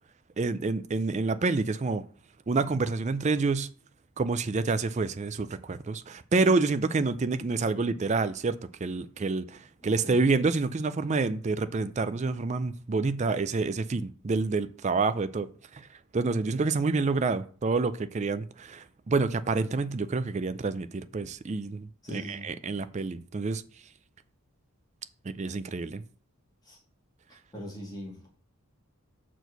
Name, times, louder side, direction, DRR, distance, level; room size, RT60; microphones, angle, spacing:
voice 1, 0.4-2.0 2.5-3.7 4.2-15.9 16.1-23.6 25.2-26.0, right 3 dB, 30° right, 0.4 m, -28 dB
voice 2, 9.8-10.2 22.0-22.5 26.7-26.8 27.5-28.3, equal, 20° left, 2.4 m, -41 dB
6.2 x 4.6 x 6.7 m
head